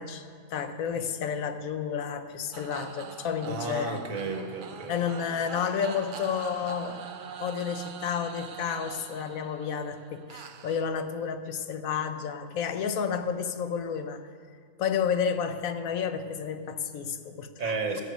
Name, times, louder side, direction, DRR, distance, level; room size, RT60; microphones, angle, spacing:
voice 1, 0.0-4.0 4.9-7.1 7.4-14.3 14.8-17.8, left 7 dB, 90° left, 10 dB, 1.2 m, -31 dB
sound 1, 2.5-10.9, right 7 dB, 50° right, 0.6 m, -43 dB
voice 2, 3.5-5.3 17.6-18.0, right 4 dB, 85° right, 5 dB, 1.8 m, -33 dB
17.5 x 7.5 x 6.3 m, 2.2 s
omnidirectional pair, 1.4 m